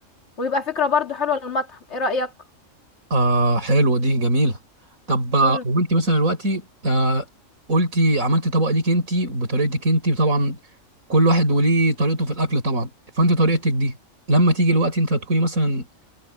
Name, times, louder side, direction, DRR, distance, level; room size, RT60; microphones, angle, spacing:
voice 1, 0.4-2.3 5.4-5.6, left 4 dB, 55° left, 2.8 m, -24 dB
voice 2, 3.1-4.6 5.1-7.2 7.7-10.6 11.1-12.9 13.2-13.9 14.3-15.9, right 1 dB, 85° right, 5.8 m, -20 dB
omnidirectional pair, 1.4 m